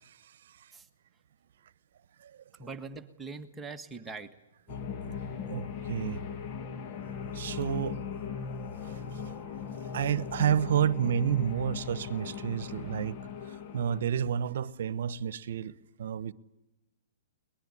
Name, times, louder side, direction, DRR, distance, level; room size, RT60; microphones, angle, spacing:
voice 1, 2.5-4.4 5.2-5.3, right 4 dB, 10° right, 1.5 m, -42 dB
sound 1, 4.7-14.0, left 6 dB, 35° left, 1.6 m, -38 dB
voice 2, 5.1-6.2 7.3-8.0 8.8-9.0 9.9-13.2 13.5-16.3, right 9 dB, 65° right, 1.0 m, -30 dB
22.5 x 20.5 x 9.9 m
hypercardioid pair, 140°, 0 cm